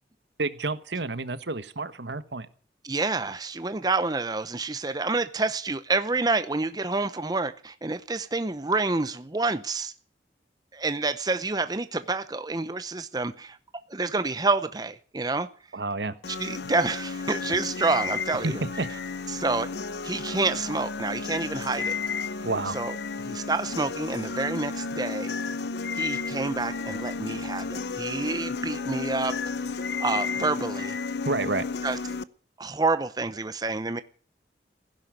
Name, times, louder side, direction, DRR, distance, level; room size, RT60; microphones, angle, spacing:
voice 1, 0.4-2.5 15.7-16.2 18.4-18.9 22.4-22.8 31.2-31.7, right 3 dB, 80° right, 13 dB, 1.4 m, -29 dB
voice 2, 2.8-9.9 10.7-13.6 13.9-15.5 16.4-18.6 19.3-19.7 20.0-22.0 22.7-22.9 23.2-25.3 25.9-29.4 29.7-31.0 31.8-32.0 32.6-34.0, right 3 dB, 20° right, 12 dB, 0.7 m, -28 dB
sound 1, 16.2-32.2, left 4 dB, 70° left, 0.8 m, -32 dB
15.5 x 11.5 x 7.9 m, 0.43 s
head